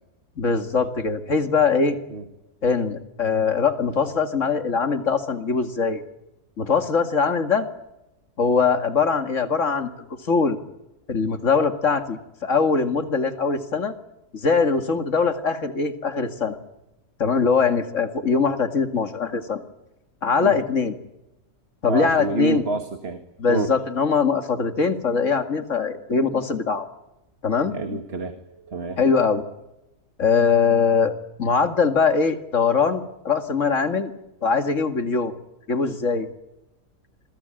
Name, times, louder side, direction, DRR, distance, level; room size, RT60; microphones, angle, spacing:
voice 1, 0.4-2.0 2.6-6.0 6.6-7.7 8.4-10.6 11.1-13.9 14.3-16.6 17.2-19.6 20.2-21.0 21.8-22.6 23.4-26.9 27.4-27.8 29.0-29.4 30.2-31.1 31.4-34.1 34.4-35.3 35.7-36.3, left 5 dB, 55° left, 8 dB, 2.3 m, -22 dB
voice 2, 21.8-23.2 23.5-23.8 27.7-29.0, right 3 dB, 40° right, 7 dB, 2.0 m, -28 dB
27.0 x 21.0 x 8.9 m, 0.94 s
omnidirectional pair, 1.6 m